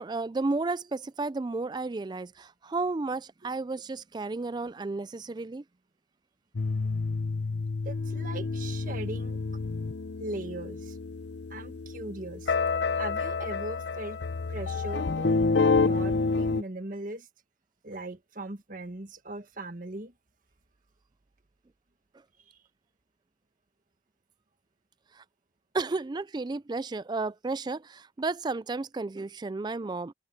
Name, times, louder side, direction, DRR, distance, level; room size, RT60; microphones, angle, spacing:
voice 1, 0.0-5.6 25.1-25.2 25.7-30.1, right 3 dB, 25° right, 0.4 m, -32 dB
sound 1, 6.5-16.6, left 4 dB, 80° left, 0.7 m, -29 dB
voice 2, 7.8-9.4 10.2-11.0 11.5-12.5 13.0-14.2 14.5-15.5 15.8-17.3 17.8-20.1 22.5-22.6, right 2 dB, 50° right, 1.7 m, -39 dB
head